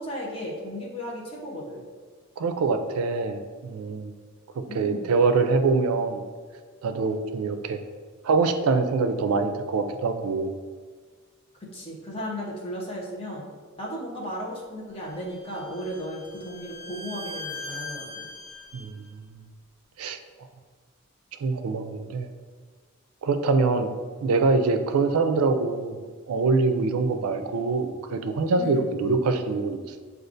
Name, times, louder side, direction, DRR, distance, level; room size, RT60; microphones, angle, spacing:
voice 1, 0.0-1.8 4.7-5.0 11.7-13.4 13.8-18.2 28.6-28.9, equal, 25° left, -4 dB, 0.8 m, -35 dB
voice 2, 2.4-4.1 4.7-6.2 6.8-7.8 8.2-10.5 18.7-19.1 20.0-20.2 21.4-22.3 23.2-23.9 24.2-26.0 26.3-30.0, right 4 dB, 80° right, 7 dB, 0.4 m, -24 dB
Bowed string instrument, 15.1-18.9, left 3 dB, 45° right, 1.0 m, -40 dB
6.2 x 2.4 x 2.6 m, 1.5 s
head